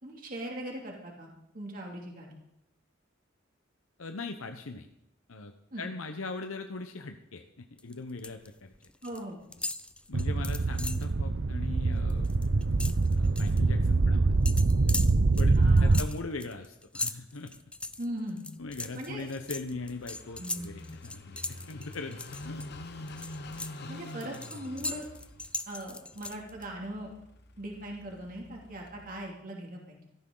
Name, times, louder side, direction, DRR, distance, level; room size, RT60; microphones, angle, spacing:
voice 1, 0.0-2.4 5.7-5.8 9.0-9.4 15.6-16.0 18.0-18.4 18.9-19.3 20.4-20.8 23.9-25.1 25.7-27.1 27.6-30.1, right 1 dB, 45° right, -1 dB, 2.6 m, -40 dB
voice 2, 4.0-4.9 5.3-8.7 10.1-12.3 13.1-14.3 15.4-15.5 15.8-17.5 18.6-22.6 23.6-23.9, left 3 dB, 85° left, 6 dB, 0.9 m, -40 dB
sound 1, 7.8-8.5 8.7-9.2 9.5-11.1 11.5-11.7 12.0-13.6 14.5-22.7 23.1-26.7, left 2 dB, 5° left, 0.4 m, -39 dB
sound 2, 10.1-16.0, right 3 dB, 60° right, 0.6 m, -24 dB
Car passing by / Idling, 18.6-29.3, left 2 dB, 50° left, 1.1 m, -47 dB
16.5 x 14.0 x 3.9 m, 0.79 s
head